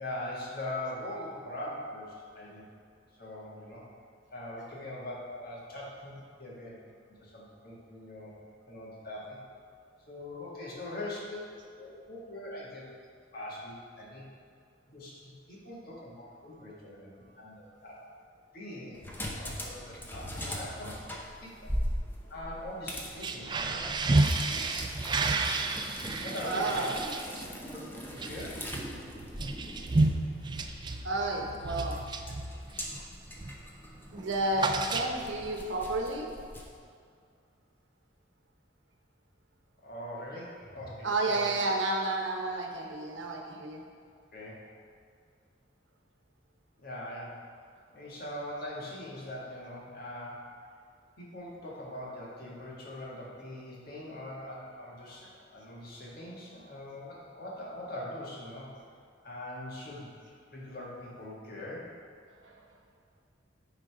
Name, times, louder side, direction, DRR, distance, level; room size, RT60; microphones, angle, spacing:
voice 1, 0.0-2.0 2.3-2.6 3.2-3.8 4.3-6.1 6.4-6.8 7.2-8.3 8.7-9.4 10.1-12.9 13.3-14.2 14.9-16.1 16.4-17.1 17.4-17.6 17.8-18.0 18.5-20.9 21.4-21.7 22.3-23.8 26.2-26.9 27.6-27.8 28.1-28.5 39.8-41.6 44.3-44.6 46.8-47.4 47.9-50.5 51.2-55.2 55.5-58.7 59.2-60.1 60.5-61.9, left 1 dB, 55° left, -5 dB, 1.8 m, -41 dB
sound 1, 18.9-36.8, equal, 10° left, 0.8 m, -41 dB
sound 2, 23.1-33.0 33.4-33.7 33.9-35.5, right 2 dB, 25° right, 0.4 m, -31 dB
voice 2, 26.4-27.0 31.0-32.0 34.1-36.3 41.0-43.8 62.5-62.6, right 2 dB, 85° right, 1 dB, 0.9 m, -31 dB
9.7 x 3.9 x 4.7 m, 2.2 s
head